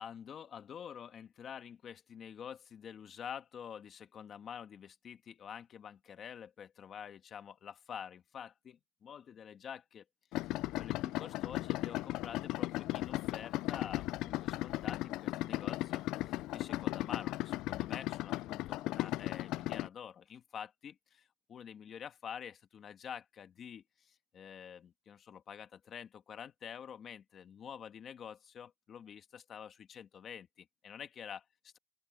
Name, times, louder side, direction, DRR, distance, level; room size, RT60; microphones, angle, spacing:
voice 1, 0.0-10.0 10.4-31.8, left 8 dB, 30° left, 1.6 m, -48 dB
Idling, 10.3-19.9, left 17 dB, 50° left, 0.3 m, -36 dB
open air
cardioid pair, 160°, 0 cm